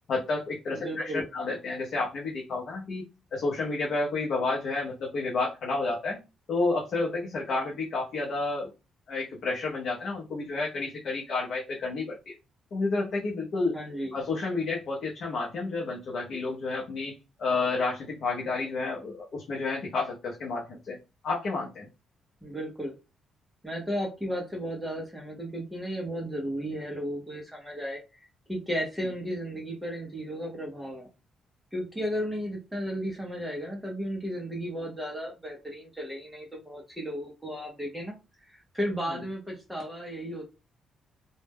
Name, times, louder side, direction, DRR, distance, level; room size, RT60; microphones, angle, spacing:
voice 1, 0.1-3.0 3.3-6.2 6.5-8.7 9.1-12.3 12.7-13.7 14.1-17.1 17.4-21.0 21.2-21.9, left 3 dB, 50° left, -2 dB, 0.6 m, -30 dB
voice 2, 0.7-1.3 13.7-14.2 22.4-22.9 23.6-28.0 28.5-31.1 31.7-38.1 38.5-40.4, equal, 5° right, -1 dB, 0.5 m, -34 dB
2.1 x 2.0 x 3.3 m, 0.28 s
cardioid pair, 175°, 0 cm